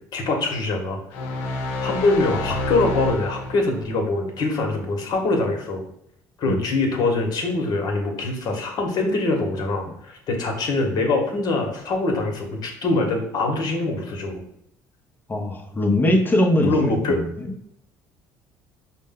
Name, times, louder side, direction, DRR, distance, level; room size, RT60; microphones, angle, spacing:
voice 1, 0.1-1.0 1.8-5.8 6.4-14.4 16.5-17.2, left 2 dB, 55° left, 2 dB, 1.2 m, -23 dB
sound 1, 1.1-3.9, left 2 dB, 80° left, 0.6 m, -28 dB
voice 2, 15.3-17.5, left 1 dB, 25° left, 2 dB, 0.9 m, -21 dB
5.1 x 2.1 x 3.7 m, 0.74 s
supercardioid pair, 75°, 8 cm